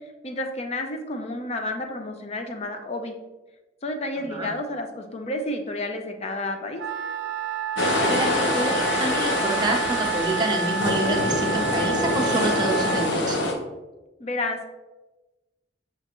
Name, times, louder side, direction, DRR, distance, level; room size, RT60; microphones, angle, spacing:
voice 1, 0.2-3.1 3.8-6.8 14.2-14.7, left 2 dB, 35° left, 5 dB, 0.5 m, -30 dB
Wind instrument woodwind instrument, 6.8-13.1, right 5 dB, 85° right, 0.3 m, -29 dB
sound 1, 7.8-13.5, left 2 dB, 90° left, 0.7 m, -25 dB
voice 2, 8.1-13.5, right 2 dB, 25° right, 1 dB, 0.6 m, -27 dB
6.5 x 2.5 x 2.9 m, 1.1 s
head